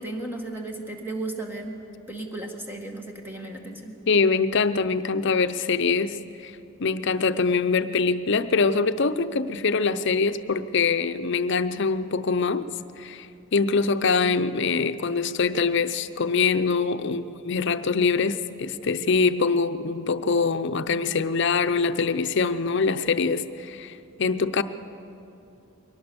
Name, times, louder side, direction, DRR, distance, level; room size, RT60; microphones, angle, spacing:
voice 1, 0.0-1.8 2.1-4.0, right 2 dB, 10° right, 2 dB, 1.8 m, -34 dB
voice 2, 4.1-6.5 6.8-12.7 13.0-13.3 13.5-24.6, left 4 dB, 60° left, 11 dB, 0.6 m, -24 dB
22.5 x 18.5 x 7.0 m, 2.7 s
head